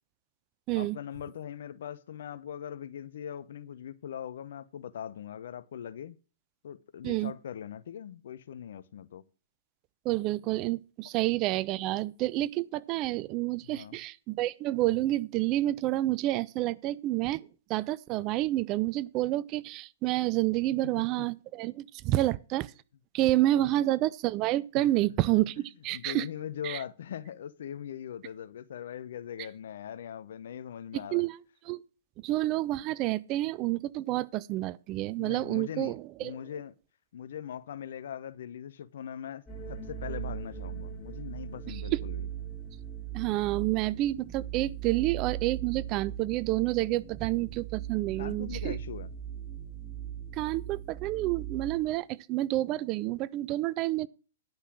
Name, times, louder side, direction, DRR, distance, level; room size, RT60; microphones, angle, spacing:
voice 1, 0.7-6.2 6.6-9.2 13.6-14.0 20.9-21.3 22.1-22.2 23.5-23.8 24.7-24.9 25.6-31.2 35.2-36.7 37.1-39.4 39.7-42.3 48.2-49.1, left 9 dB, 65° left, 0.8 m, -41 dB
voice 2, 10.0-17.4 17.7-22.7 23.1-26.3 26.6-26.8 31.1-31.4 31.7-31.8 32.2-36.3 41.7-42.0 43.1-48.8 50.3-54.1, right 16 dB, 35° right, 0.5 m, -29 dB
sound 1, 39.5-52.0, right 10 dB, 15° left, 3.1 m, -39 dB
10.5 x 5.6 x 6.1 m
hypercardioid pair, 120°, 0 cm